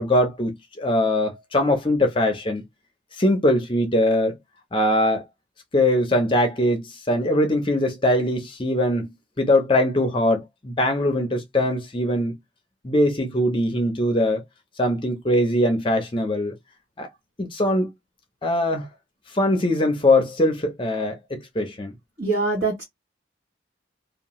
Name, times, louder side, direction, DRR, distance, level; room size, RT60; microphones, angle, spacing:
voice 1, 0.0-2.6 3.2-4.4 4.7-5.2 5.7-9.1 9.4-12.4 12.8-14.4 14.8-16.5 17.0-17.1 17.4-17.9 18.4-18.9 19.3-21.9, left 1 dB, 25° left, 0.5 m, -21 dB
voice 2, 22.2-22.8, right 3 dB, 55° right, 1.3 m, -23 dB
2.7 x 2.1 x 3.0 m
head